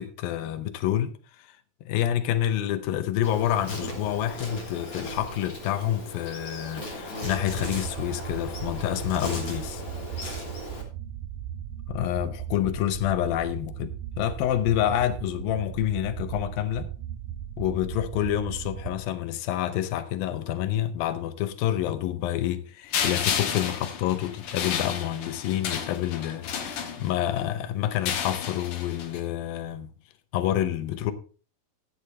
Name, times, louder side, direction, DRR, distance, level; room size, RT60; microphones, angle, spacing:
voice 1, 0.0-1.5 1.9-9.8 11.9-16.9 17.6-29.9 30.3-31.1, left 12 dB, 80° left, 2.6 m, -28 dB
Insect, 3.2-10.8, left 1 dB, 25° left, 3.2 m, -37 dB
sound 1, 7.2-19.0, right 11 dB, 85° right, 2.6 m, -37 dB
sound 2, 22.9-27.4 27.9-29.2, left 7 dB, 65° left, 2.9 m, -31 dB
13.0 x 9.6 x 3.3 m
omnidirectional pair, 4.1 m